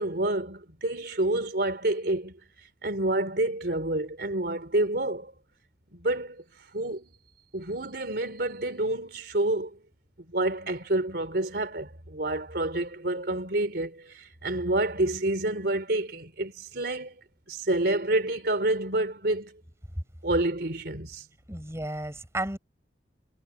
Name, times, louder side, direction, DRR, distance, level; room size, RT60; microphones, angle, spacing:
voice 1, 0.0-2.4 2.8-5.3 5.9-6.4 6.7-7.1 7.5-9.8 10.3-17.2 17.5-19.5 20.2-21.3, right 1 dB, 65° right, 4.0 m, -28 dB
voice 2, 21.5-22.6, right 1 dB, 15° right, 8.0 m, -33 dB
head